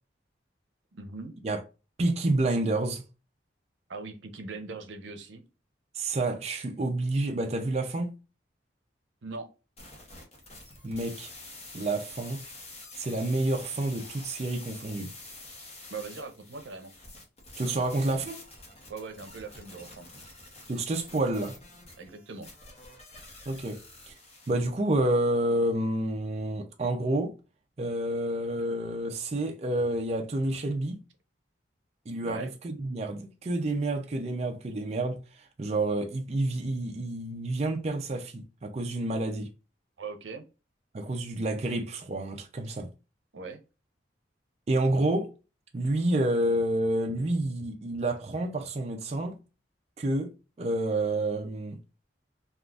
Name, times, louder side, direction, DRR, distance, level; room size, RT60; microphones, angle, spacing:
voice 1, 0.9-1.4 3.9-5.4 9.2-9.5 15.9-16.9 18.9-20.3 22.0-22.5 32.2-32.5 40.0-40.5 43.3-43.6, right 4 dB, 85° right, 0.6 m, -40 dB
voice 2, 2.0-3.0 5.9-8.1 10.8-11.3 11.7-12.4 12.9-15.1 17.6-18.4 20.7-21.6 23.5-24.1 24.5-27.3 27.8-31.0 32.1-39.5 40.9-42.9 44.7-45.3 45.7-49.4 50.0-51.8, right 2 dB, 35° right, 0.4 m, -29 dB
sound 1, 9.8-24.6, left 2 dB, 35° left, 0.9 m, -47 dB
3.6 x 2.4 x 2.3 m
head